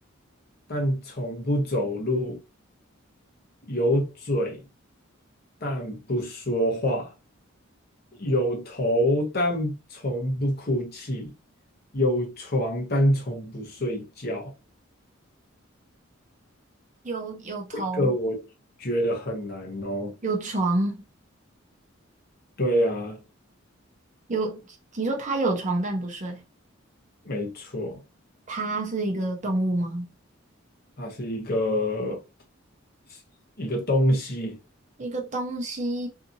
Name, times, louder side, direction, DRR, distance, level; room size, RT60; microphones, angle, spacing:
voice 1, 0.7-2.4 3.7-4.6 5.6-7.1 8.2-11.3 11.9-14.5 17.7-18.4 18.8-20.1 22.6-23.2 27.2-28.0 31.0-32.2 33.1-33.2 33.6-34.6, equal, 50° left, 0.9 m, -26 dB
voice 2, 17.0-18.1 20.2-21.0 24.3-24.6 24.9-26.4 28.5-30.1 35.0-36.1, right 2 dB, 35° right, 0.6 m, -28 dB
2.8 x 2.5 x 2.6 m
head